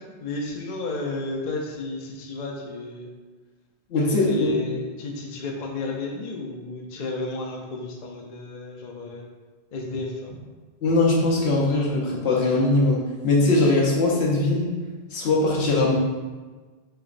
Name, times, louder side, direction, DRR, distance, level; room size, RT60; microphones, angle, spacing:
voice 1, 0.2-3.1 4.1-9.3 9.7-10.3, left 2 dB, 50° left, 0 dB, 0.6 m, -32 dB
voice 2, 3.9-4.5 10.8-14.7 15.1-15.9, left 2 dB, 80° left, -3 dB, 1.0 m, -21 dB
4.5 x 3.0 x 2.4 m, 1.3 s
omnidirectional pair, 1.1 m